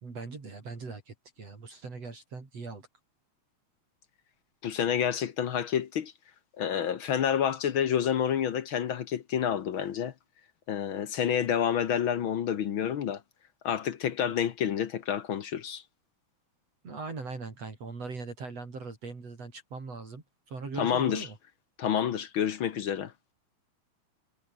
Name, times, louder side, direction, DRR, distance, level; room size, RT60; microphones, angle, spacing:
voice 1, 0.0-2.9 16.8-21.4, right 4 dB, 55° right, 5.7 m, -40 dB
voice 2, 4.6-6.1 6.6-10.1 10.7-13.2 13.6-15.8 20.8-21.3 21.8-23.1, left 9 dB, 60° left, 1.4 m, -28 dB
omnidirectional pair, 3.5 m